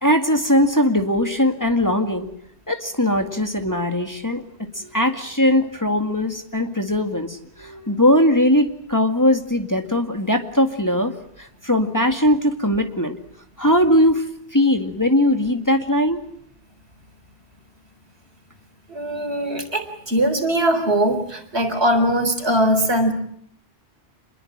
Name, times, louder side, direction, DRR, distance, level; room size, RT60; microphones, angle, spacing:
voice 1, 0.0-2.3 2.7-4.4 4.7-13.2 13.6-14.3 14.5-16.2, left 1 dB, 15° left, 5 dB, 2.0 m, -20 dB
voice 2, 18.9-23.1, right 1 dB, 75° right, 7 dB, 4.4 m, -21 dB
28.0 x 21.5 x 8.7 m, 0.68 s
omnidirectional pair, 1.1 m